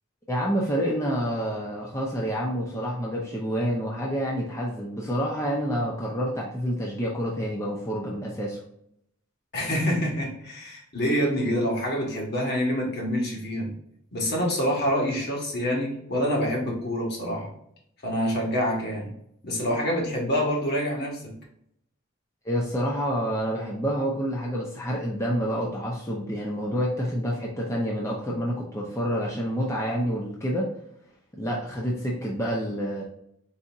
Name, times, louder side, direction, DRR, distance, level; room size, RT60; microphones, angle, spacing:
voice 1, 0.3-8.6 22.4-30.7 31.4-33.0, equal, 15° left, -3 dB, 0.7 m, -28 dB
voice 2, 9.5-13.7 14.1-17.5 18.0-19.1 19.4-21.3, equal, 50° left, -2 dB, 1.5 m, -26 dB
4.1 x 4.1 x 2.5 m, 0.73 s
head